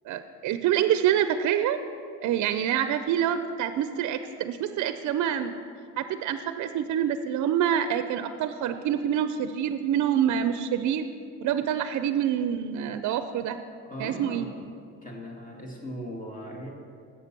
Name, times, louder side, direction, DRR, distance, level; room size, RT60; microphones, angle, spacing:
voice 1, 0.1-1.8 2.2-5.5 6.0-11.1 11.4-13.6 14.0-14.5, right 9 dB, 70° right, 10 dB, 0.5 m, -26 dB
voice 2, 13.8-14.5 15.0-16.7, equal, 25° left, -1 dB, 1.8 m, -38 dB
7.8 x 6.7 x 5.9 m, 2.3 s
cardioid pair, 90°, 30 cm